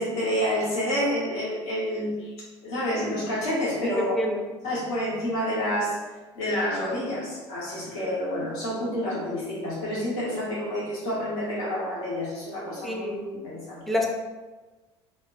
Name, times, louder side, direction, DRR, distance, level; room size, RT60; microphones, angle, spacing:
voice 1, 0.0-2.3 2.6-4.2 4.6-6.0 6.4-13.1 13.4-13.8, equal, 65° left, -7 dB, 0.9 m, -28 dB
voice 2, 12.8-13.5 13.9-14.1, left 1 dB, ahead, 1 dB, 0.5 m, -28 dB
2.2 x 2.1 x 3.5 m, 1.2 s
hypercardioid pair, 70°, 14 cm